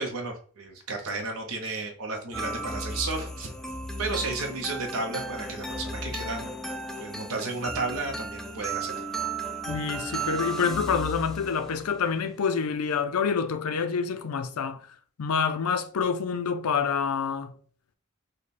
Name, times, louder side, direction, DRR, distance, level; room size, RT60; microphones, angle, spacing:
voice 1, 0.0-3.5 4.0-6.5 7.0-8.9, right 3 dB, 80° right, 0.8 m, -33 dB
sound 1, 2.3-12.0, right 2 dB, ahead, 0.3 m, -35 dB
voice 2, 9.7-14.9 15.2-17.5, left 6 dB, 90° left, 0.5 m, -27 dB
5.1 x 2.2 x 4.1 m
head